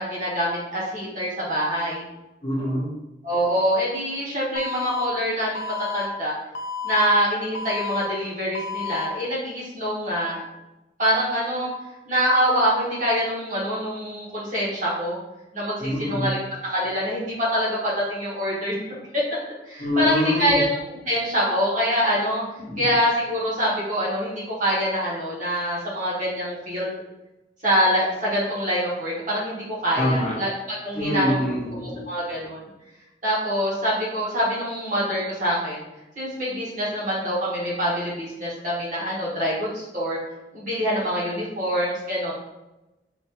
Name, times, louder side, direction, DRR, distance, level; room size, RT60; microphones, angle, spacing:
voice 1, 0.0-2.0 3.2-6.3 6.8-10.4 11.0-11.7 12.1-15.2 15.5-18.7 19.1-19.2 19.7-20.6 21.1-22.4 22.8-26.9 27.6-30.5 30.8-31.4 31.8-32.6 33.2-35.8 36.2-40.2 40.5-42.3, equal, 45° right, -7 dB, 1.4 m, -25 dB
voice 2, 2.4-2.9 15.8-16.4 19.8-20.6 22.7-22.9 30.0-30.3 30.9-32.0, left 1 dB, 40° left, -5 dB, 1.0 m, -25 dB
Alarm, 4.6-5.1 5.6-6.1 6.6-7.1 7.6-8.1 8.6-9.1, left 6 dB, 80° left, 0.5 m, -31 dB
4.2 x 2.6 x 3.0 m, 0.98 s
head